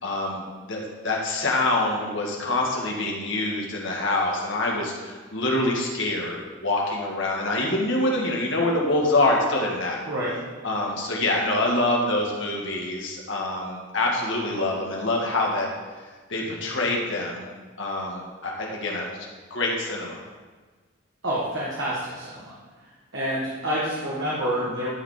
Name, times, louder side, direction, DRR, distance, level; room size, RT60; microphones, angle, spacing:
voice 1, 0.0-10.1 10.6-15.7 16.0-17.5 17.8-20.2, left 2 dB, 60° left, -1 dB, 1.8 m, -26 dB
voice 2, 21.2-22.6 23.1-24.9, equal, 65° right, -6 dB, 1.7 m, -28 dB
13.0 x 5.0 x 5.0 m, 1.4 s
head